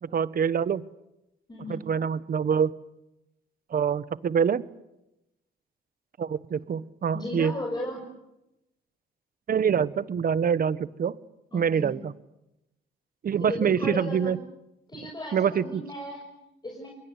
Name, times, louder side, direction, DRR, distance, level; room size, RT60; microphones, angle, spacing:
voice 1, 0.0-0.8 1.7-2.7 3.7-4.6 6.2-7.5 9.5-11.2 11.5-12.1 13.2-14.4 15.3-15.8, right 7 dB, 45° right, 17 dB, 1.2 m, -25 dB
voice 2, 1.5-1.8 7.1-8.1 11.5-11.9 13.4-14.4 14.9-16.9, left 1 dB, 20° left, 2 dB, 6.3 m, -36 dB
28.5 x 22.5 x 8.2 m, 0.91 s
cardioid pair, 90°, 20 cm